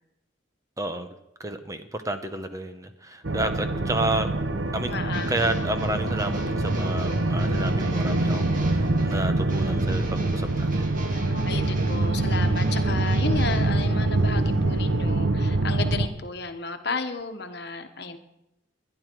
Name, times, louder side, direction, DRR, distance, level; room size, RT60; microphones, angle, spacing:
voice 1, 0.8-1.1 1.4-4.3 4.7-5.0 5.3-11.0, right 1 dB, 20° right, 8 dB, 0.8 m, -31 dB
sound 1, 3.2-16.1, right 2 dB, 85° right, 1.0 m, -24 dB
voice 2, 4.9-5.4 11.1-18.2, left 4 dB, 60° left, 7 dB, 1.3 m, -33 dB
sound 2, 5.1-13.9, right 2 dB, 45° right, 2.0 m, -40 dB
21.0 x 11.0 x 4.6 m, 0.88 s
head